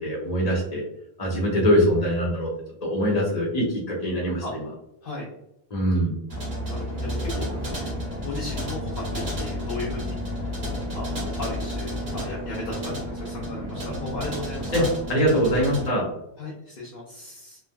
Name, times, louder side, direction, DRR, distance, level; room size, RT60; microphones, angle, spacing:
voice 1, 0.0-0.8 1.2-2.5 2.8-4.6 5.7-6.2 14.7-14.8 15.1-16.1, equal, 40° left, -3 dB, 1.1 m, -23 dB
sound 1, 6.3-15.9, equal, 65° right, 1.4 m, -31 dB
voice 2, 6.7-7.5 8.2-10.1 10.9-11.1 11.4-14.9 16.4-17.6, left 2 dB, 60° left, -5 dB, 0.9 m, -35 dB
3.3 x 2.4 x 2.2 m, 0.83 s
omnidirectional pair, 1.1 m